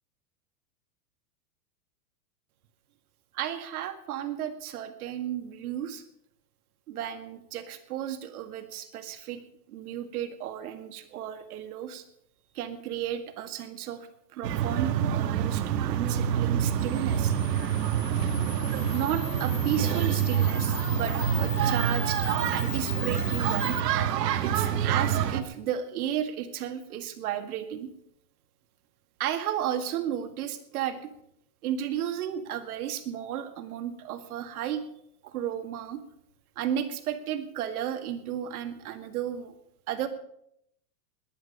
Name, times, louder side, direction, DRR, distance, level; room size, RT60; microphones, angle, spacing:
voice 1, 3.3-6.0 6.9-9.4 9.7-12.0 12.5-17.3 18.9-22.2 22.5-23.9 24.4-27.9 29.2-31.1 31.6-34.8 35.2-36.0 36.6-39.5 39.9-40.1, right 10 dB, 65° right, 8 dB, 2.0 m, -33 dB
sound 1, 14.4-25.4, right 9 dB, 90° right, 1.6 m, -27 dB
Camera, 16.8-23.8, left 15 dB, 50° left, 1.6 m, -40 dB
20.5 x 9.4 x 5.4 m, 0.73 s
supercardioid pair, 170°, 47 cm